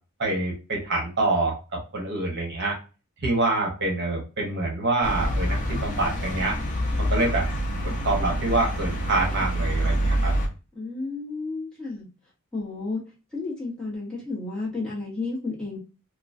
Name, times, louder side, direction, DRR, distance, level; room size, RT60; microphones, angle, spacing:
voice 1, 0.2-2.8 3.2-6.6 7.0-7.5 7.8-10.3, right 2 dB, 50° right, 1.0 m, -26 dB
sound 1, 5.0-10.5, equal, 35° left, 0.6 m, -26 dB
voice 2, 10.7-12.1 12.5-13.0 13.3-15.8, left 3 dB, 5° left, 1.1 m, -32 dB
3.0 x 2.3 x 2.5 m
head